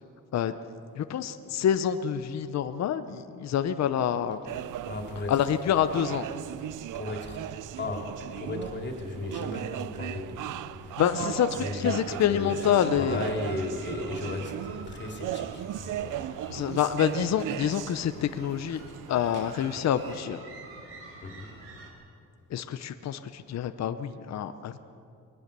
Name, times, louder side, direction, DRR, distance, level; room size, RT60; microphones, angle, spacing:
voice 1, 0.9-4.4 5.3-6.3 11.0-13.3 16.5-18.8 19.1-20.4 22.5-24.8, left 9 dB, 55° left, 10 dB, 0.8 m, -27 dB
sound 1, 4.5-20.2, right 13 dB, 70° right, 0.6 m, -37 dB
voice 2, 4.8-5.4 6.9-7.4 7.7-11.0 11.5-16.4 21.2-21.5, left 2 dB, 35° left, 1 dB, 3.3 m, -35 dB
sound 2, 12.3-21.9, right 3 dB, 45° right, 4.2 m, -48 dB
21.5 x 19.5 x 6.8 m, 2.6 s
cardioid pair, 140°, 33 cm